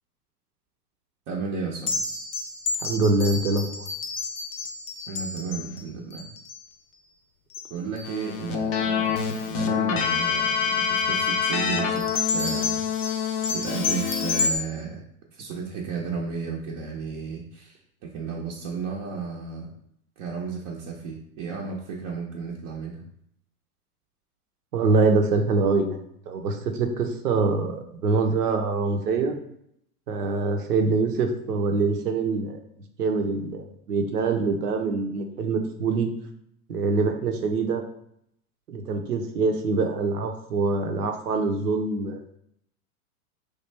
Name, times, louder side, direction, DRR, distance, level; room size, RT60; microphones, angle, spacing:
voice 1, 1.3-2.1 5.1-6.3 7.7-12.9 13.2-19.7 20.2-23.1, right 5 dB, 35° right, -2 dB, 0.5 m, -33 dB
sound 1, 1.9-6.6 7.5-7.7 8.0-8.4 9.1-9.3 11.8-14.6, left 4 dB, 80° left, 0.6 m, -31 dB
voice 2, 2.8-3.9 24.7-29.4 30.1-32.6 33.0-36.1 36.7-37.8 38.7-42.2, right 3 dB, 90° right, 5 dB, 0.7 m, -24 dB
Keyboard (musical), 8.0-14.5, left 7 dB, 35° left, 0.4 m, -26 dB
3.2 x 2.3 x 3.2 m, 0.73 s
hypercardioid pair, 105°, 45 cm